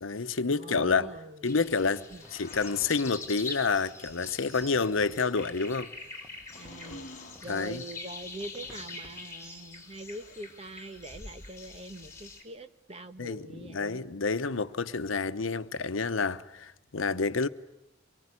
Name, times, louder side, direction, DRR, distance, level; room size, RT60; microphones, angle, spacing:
voice 1, 0.0-1.1 1.4-5.9 7.5-7.8 13.2-17.5, left 4 dB, 85° left, 0.9 m, -29 dB
voice 2, 0.5-1.5 2.1-2.3 6.5-7.1 7.4-14.0, right 1 dB, 30° right, 1.1 m, -43 dB
sound 1, 1.4-12.4, left 3 dB, 15° left, 4.2 m, -44 dB
sound 2, 1.7-9.3, equal, 10° right, 2.1 m, -56 dB
sound 3, 2.2-3.1 4.6-5.4 6.5-7.5 8.7-9.1 10.1-10.8, left 3 dB, 40° left, 1.4 m, -49 dB
24.0 x 22.5 x 9.8 m
head